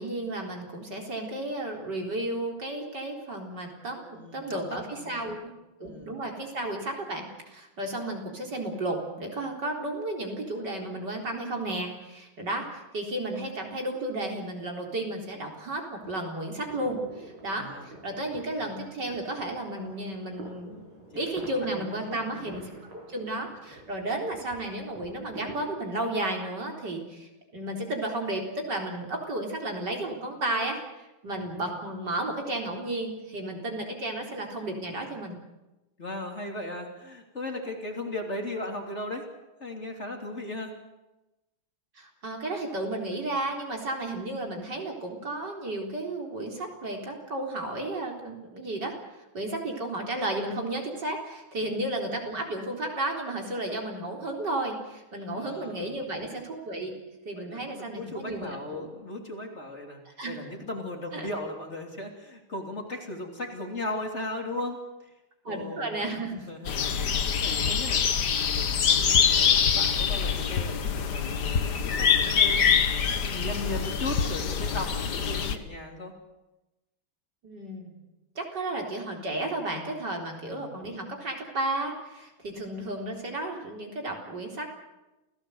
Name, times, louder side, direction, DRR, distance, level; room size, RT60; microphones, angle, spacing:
voice 1, 0.0-5.5 5.8-20.8 21.1-35.4 42.0-48.9 49.3-56.9 57.3-58.9 60.2-60.3 61.1-61.3 65.4-66.5 77.4-77.9 78.4-84.7, right 1 dB, 55° right, 1 dB, 4.6 m, -33 dB
voice 2, 4.1-5.2 5.8-6.1 17.5-17.9 21.6-22.6 36.0-39.3 39.6-40.7 51.6-51.7 55.3-55.9 57.4-65.1 65.5-66.0 66.5-67.0 67.4-68.1 68.4-72.6 73.1-76.1 80.3-80.8, left 1 dB, 30° left, 2 dB, 3.5 m, -37 dB
sound 1, 16.5-25.7, right 1 dB, 70° right, 7.2 m, -47 dB
sound 2, 66.7-75.6, left 7 dB, 55° left, 1.9 m, -25 dB
28.5 x 17.5 x 8.0 m, 1.0 s
omnidirectional pair, 2.3 m